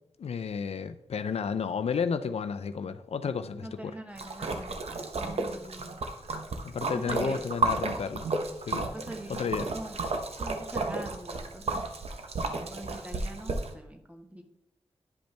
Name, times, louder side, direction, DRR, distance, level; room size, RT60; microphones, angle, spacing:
voice 1, 0.2-4.0 6.6-8.3 8.6-8.9 9.3-9.7, left 6 dB, 70° left, 0.4 m, -32 dB
voice 2, 3.5-4.8 5.2-6.0 7.0-7.4 8.8-10.0 10.4-11.8 12.5-14.4, right 1 dB, 10° right, 1.3 m, -43 dB
Splash splatter, 4.2-13.7, right 3 dB, 70° right, 0.9 m, -33 dB
10.5 x 5.2 x 3.3 m
cardioid pair, 65°, 11 cm